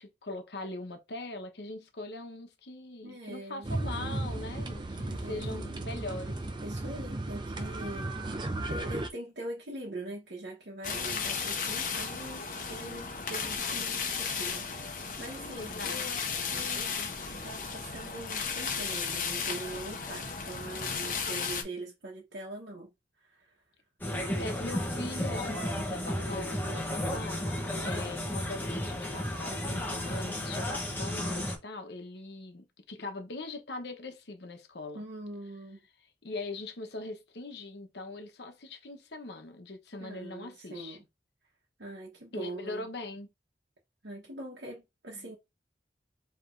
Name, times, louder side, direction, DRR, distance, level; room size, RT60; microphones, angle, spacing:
voice 1, 0.0-6.5 15.6-16.0 24.4-27.6 27.8-35.0 36.2-41.0 42.3-43.3 45.1-45.3, left 2 dB, 70° left, 1.0 m, -41 dB
voice 2, 3.0-3.7 5.0-5.7 6.6-22.9 23.2-23.6 34.9-35.8 40.0-41.0 41.8-42.9 44.0-45.4, right 1 dB, 75° right, 1.1 m, -43 dB
sound 1, 3.6-9.1, right 2 dB, 25° right, 0.5 m, -35 dB
sound 2, 10.8-21.6, left 6 dB, 45° left, 0.9 m, -34 dB
sound 3, 24.0-31.6, left 1 dB, 10° left, 0.9 m, -33 dB
4.9 x 3.2 x 2.6 m
head